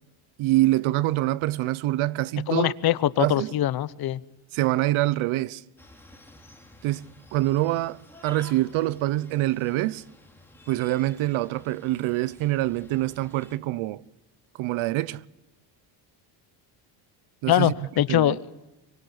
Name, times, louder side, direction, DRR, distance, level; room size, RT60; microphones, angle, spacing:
voice 1, 0.4-2.7 3.2-3.5 4.5-5.6 6.8-10.0 10.7-14.0 14.6-15.2 17.4-17.7 18.1-18.4, right 16 dB, 75° right, 0.9 m, -25 dB
voice 2, 2.5-4.2 17.5-18.4, left 12 dB, 50° left, 0.9 m, -23 dB
sound 1, 5.8-13.6, left 2 dB, 5° left, 3.0 m, -52 dB
25.0 x 24.0 x 8.4 m
cardioid pair, 140°, 48 cm